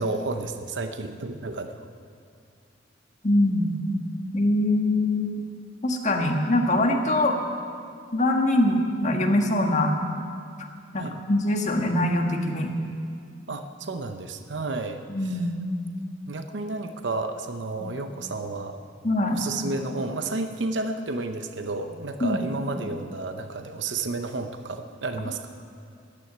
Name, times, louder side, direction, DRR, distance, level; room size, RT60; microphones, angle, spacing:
voice 1, 0.0-1.9 10.9-11.2 13.5-15.3 16.3-18.8 19.3-25.4, right 3 dB, 70° right, 8 dB, 0.8 m, -31 dB
voice 2, 3.2-3.8 4.3-5.3 5.8-7.4 8.1-9.9 10.6-10.7 10.9-12.7 15.1-15.5 17.8-17.9 19.0-19.4 22.2-22.4, left 1 dB, 40° left, 2 dB, 1.6 m, -23 dB
14.0 x 9.8 x 9.5 m, 2.3 s
head